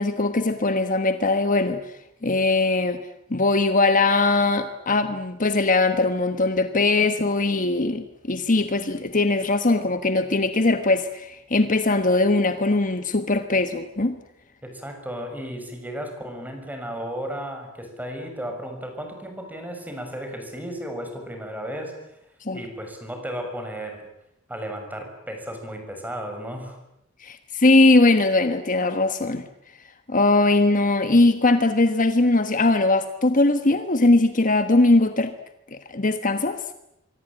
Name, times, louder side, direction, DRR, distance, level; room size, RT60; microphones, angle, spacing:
voice 1, 0.0-1.8 2.2-3.0 3.3-14.2 22.4-22.6 27.2-29.4 30.1-35.3 35.7-36.6, left 2 dB, 40° left, 9 dB, 1.3 m, -20 dB
voice 2, 14.6-21.9 22.5-24.1 24.5-26.8, equal, 10° right, 4 dB, 6.7 m, -34 dB
25.5 x 24.0 x 9.0 m, 0.83 s
head